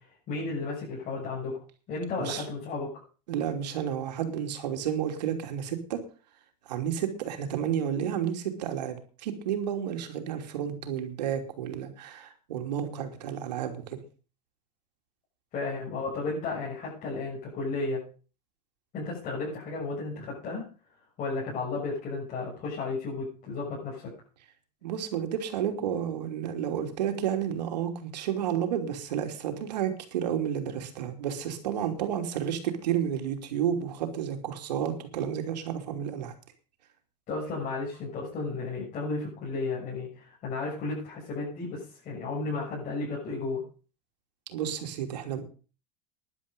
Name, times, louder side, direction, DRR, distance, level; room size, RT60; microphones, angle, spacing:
voice 1, 0.3-1.6 1.9-3.0 15.5-18.0 18.9-20.6 21.2-24.1 37.3-43.6, left 3 dB, 40° left, -6 dB, 7.2 m, -33 dB
voice 2, 3.3-6.0 6.7-14.0 24.8-36.3 44.5-45.4, right 9 dB, 90° right, 5 dB, 3.1 m, -31 dB
13.5 x 11.0 x 5.4 m, 0.37 s
supercardioid pair, 135°, 21 cm